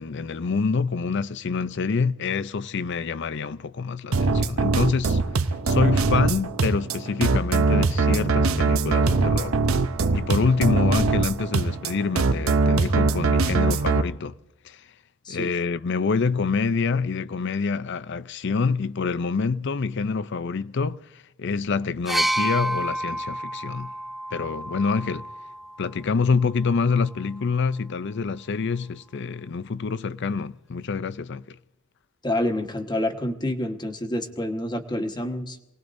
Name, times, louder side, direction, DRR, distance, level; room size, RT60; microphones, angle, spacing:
voice 1, 0.0-5.2 5.7-9.6 10.1-14.3 14.6-14.8 15.3-21.0 21.4-23.9 24.3-25.3 25.8-31.6, left 4 dB, 55° left, 0.5 m, -26 dB
sound 1, 4.1-14.0, right 3 dB, 85° right, 0.8 m, -22 dB
sound 2, 22.1-25.9 26.9-27.1, right 1 dB, ahead, 0.4 m, -29 dB
voice 2, 32.2-35.6, left 1 dB, 20° left, 1.3 m, -28 dB
27.5 x 19.0 x 2.6 m
head